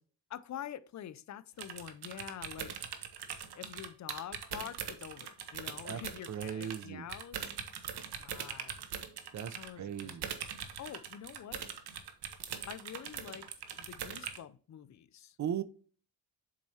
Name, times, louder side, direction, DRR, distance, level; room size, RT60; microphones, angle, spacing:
voice 1, 0.3-2.7 3.3-7.5 8.2-8.9 9.5-10.2 10.8-11.6 12.6-15.4, left 10 dB, 45° left, 0.5 m, -46 dB
sound 1, 1.6-6.8 7.1-14.4, right 8 dB, 70° right, 1.0 m, -42 dB
voice 2, 6.3-7.1 9.3-10.3 15.4-15.6, right 9 dB, 45° right, 0.6 m, -37 dB
7.4 x 4.6 x 2.7 m
cardioid pair, 95°, 41 cm